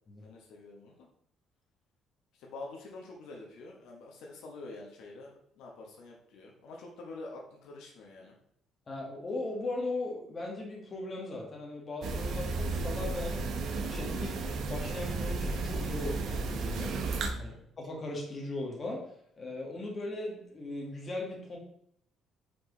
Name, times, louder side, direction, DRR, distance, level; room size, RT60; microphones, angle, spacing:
voice 1, 0.2-1.0 2.4-8.4 17.3-17.6, left 2 dB, 85° left, -1 dB, 1.2 m, -47 dB
voice 2, 8.9-13.4 13.9-17.0 17.4-17.5 17.8-19.0 19.4-21.6, left 2 dB, 35° left, -1 dB, 1.7 m, -38 dB
sound 1, 12.0-17.3, right 3 dB, 65° right, 0.8 m, -33 dB
5.2 x 4.5 x 3.9 m, 0.70 s
cardioid pair, 100°, 0 cm